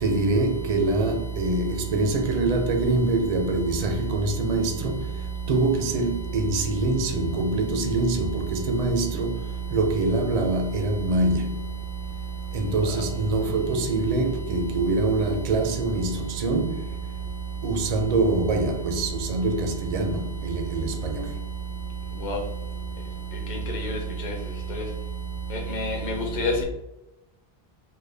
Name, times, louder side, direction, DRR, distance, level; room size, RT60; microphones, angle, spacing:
voice 1, 0.0-5.0 5.5-9.4 9.7-11.5 12.5-16.8 17.6-21.3, right 2 dB, 50° right, 0.5 m, -24 dB
voice 2, 23.7-24.3 25.7-26.6, left 1 dB, 50° left, 0.8 m, -27 dB
3.7 x 2.1 x 3.2 m
omnidirectional pair, 1.0 m